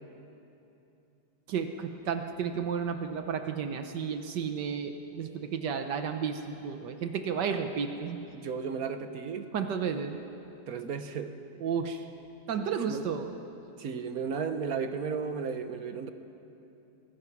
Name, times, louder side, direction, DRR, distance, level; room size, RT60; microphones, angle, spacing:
voice 1, 1.5-8.2 9.5-10.2 11.6-12.1 12.5-13.3, right 6 dB, 80° right, 6 dB, 1.6 m, -32 dB
voice 2, 8.3-9.5 10.7-11.4 12.9-13.0 13.8-16.1, right 6 dB, 60° right, 8 dB, 1.4 m, -34 dB
25.5 x 20.5 x 6.0 m, 2.9 s
omnidirectional pair, 1.8 m